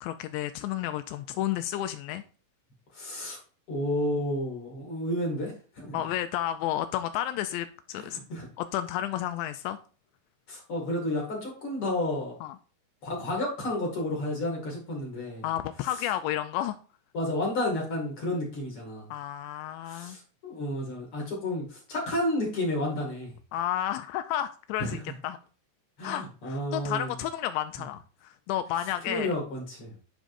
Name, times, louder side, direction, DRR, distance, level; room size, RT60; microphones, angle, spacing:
voice 1, 0.0-2.2 5.9-8.2 8.6-9.8 12.4-12.6 15.4-16.8 19.1-20.2 23.5-25.0 25.2-25.4 26.0-29.3, left 12 dB, 85° left, 9 dB, 2.5 m, -31 dB
voice 2, 2.9-3.4 3.7-6.0 7.9-8.5 10.5-12.3 13.0-15.4 17.1-19.1 19.9-23.3 24.8-25.0 26.0-27.2 29.0-30.0, left 1 dB, 45° left, -2 dB, 2.0 m, -31 dB
14.5 x 5.2 x 2.6 m, 0.39 s
omnidirectional pair, 5.5 m